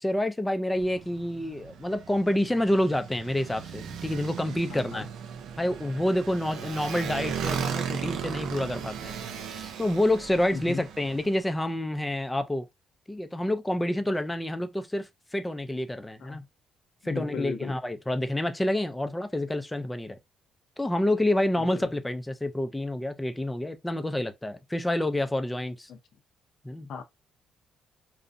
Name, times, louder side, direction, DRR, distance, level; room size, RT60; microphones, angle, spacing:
voice 1, 0.0-5.1 5.6-9.2 9.5-12.7 13.1-16.4 17.0-20.2 20.8-25.9 26.6-26.9, left 1 dB, 10° left, 0.4 m, -28 dB
Motorcycle, 0.7-11.4, right 8 dB, 85° right, 0.4 m, -37 dB
voice 2, 4.7-5.1 10.5-10.8 16.2-16.4 17.0-17.7 21.6-21.9 25.9-26.0 26.9-27.0, left 6 dB, 70° left, 0.5 m, -37 dB
2.6 x 2.0 x 2.4 m
cardioid pair, 90°, 0 cm